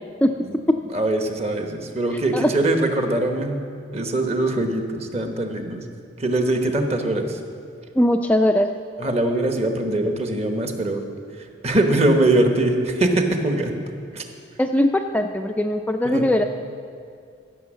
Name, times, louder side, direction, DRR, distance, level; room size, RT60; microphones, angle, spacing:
voice 1, 0.9-3.6 3.9-5.8 6.2-7.4 9.0-11.0 11.6-14.2 16.0-16.3, right 2 dB, 35° right, 4 dB, 1.1 m, -22 dB
voice 2, 8.0-8.7 14.6-16.4, left 1 dB, 10° left, 4 dB, 0.3 m, -20 dB
15.0 x 6.3 x 7.3 m, 2.3 s
head